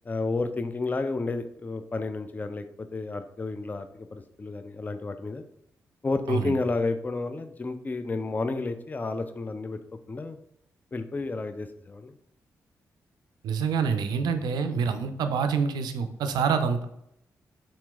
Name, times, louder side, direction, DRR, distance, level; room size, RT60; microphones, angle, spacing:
voice 1, 0.1-2.6 2.9-5.4 6.0-9.8 10.1-10.4 10.9-12.1 14.4-14.5, left 3 dB, 25° left, 9 dB, 0.3 m, -31 dB
voice 2, 13.4-16.8, right 6 dB, 80° right, 8 dB, 0.4 m, -26 dB
4.2 x 2.9 x 2.3 m, 0.77 s
supercardioid pair, 50°, 7 cm